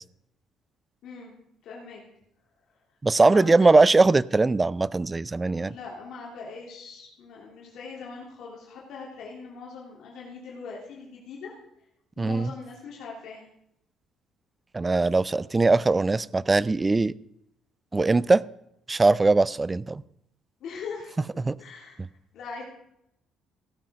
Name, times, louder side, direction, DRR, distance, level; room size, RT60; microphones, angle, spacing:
voice 1, 1.6-2.0 3.2-3.8 5.5-11.6 12.2-13.5 15.3-15.4 18.2-18.3 20.6-21.2 21.6-22.0 22.3-22.6, left 5 dB, 70° left, -4 dB, 3.1 m, -41 dB
voice 2, 3.0-5.7 12.2-12.5 14.7-17.1 17.9-18.4 18.9-20.0 21.4-21.6, right 3 dB, 20° right, 20 dB, 0.4 m, -21 dB
16.0 x 7.7 x 5.2 m, 0.78 s
cardioid pair, 110°, 0 cm